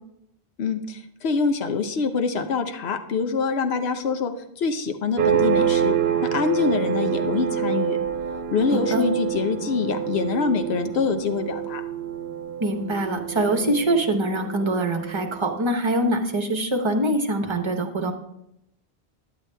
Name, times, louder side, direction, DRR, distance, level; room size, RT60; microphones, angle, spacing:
voice 1, 0.6-5.9 6.2-8.0 8.5-11.8, left 5 dB, 80° left, 7 dB, 1.0 m, -25 dB
sound 1, 5.2-15.5, right 9 dB, 75° right, 0.8 m, -27 dB
voice 2, 8.7-9.1 12.6-18.1, right 1 dB, 30° right, 4 dB, 0.8 m, -24 dB
10.0 x 7.7 x 3.3 m, 0.81 s
omnidirectional pair, 1.1 m